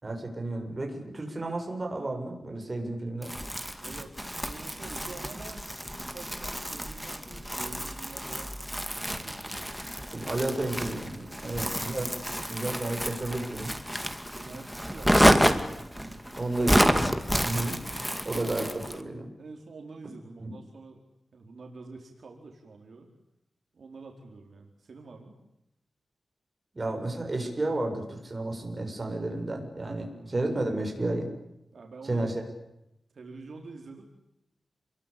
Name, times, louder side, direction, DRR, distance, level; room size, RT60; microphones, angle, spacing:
voice 1, 0.0-3.3 10.1-12.1 12.5-13.7 16.4-17.1 17.4-17.8 18.2-19.3 20.4-20.5 26.7-31.3 32.0-32.4, right 2 dB, 25° right, 3 dB, 7.3 m, -32 dB
Crumpling crinkling, 3.2-19.0, equal, ahead, 2.5 m, -29 dB
voice 2, 3.8-9.7 11.4-11.7 14.2-16.8 18.3-18.6 19.4-21.0 21.3-23.1 23.7-25.4 30.1-30.4 31.7-32.3 33.1-34.0, right 3 dB, 65° right, 2 dB, 4.6 m, -47 dB
29.5 x 22.5 x 8.7 m, 0.85 s
wide cardioid pair, 140°, 0 cm